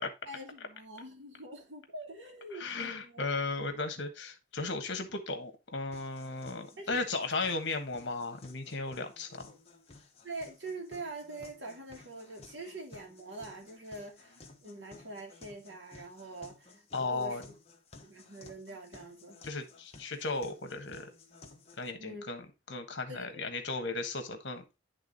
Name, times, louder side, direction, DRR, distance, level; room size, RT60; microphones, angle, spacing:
voice 1, 0.3-3.2 6.8-7.1 10.2-17.5 18.0-19.4 22.0-22.3 23.1-23.5, right 2 dB, 65° right, 2.1 m, -44 dB
voice 2, 2.5-9.5 16.9-17.4 19.4-21.1 21.8-24.6, left 3 dB, 65° left, 1.3 m, -36 dB
sound 1, 5.9-21.9, left 3 dB, 30° left, 1.2 m, -56 dB
10.5 x 3.5 x 4.0 m
head